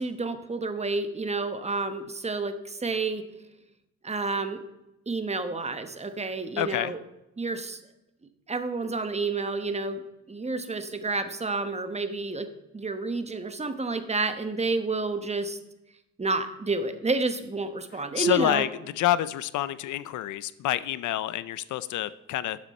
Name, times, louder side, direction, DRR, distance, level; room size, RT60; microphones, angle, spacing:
voice 1, 0.0-3.2 4.0-4.6 5.1-7.0 7.4-7.8 8.5-12.5 12.7-15.6 16.2-18.6, right 3 dB, 20° right, 9 dB, 1.1 m, -30 dB
voice 2, 6.6-6.9 18.2-18.7 19.0-22.6, left 14 dB, 75° left, 16 dB, 0.6 m, -27 dB
12.0 x 7.5 x 4.3 m, 0.91 s
cardioid pair, 90°, 30 cm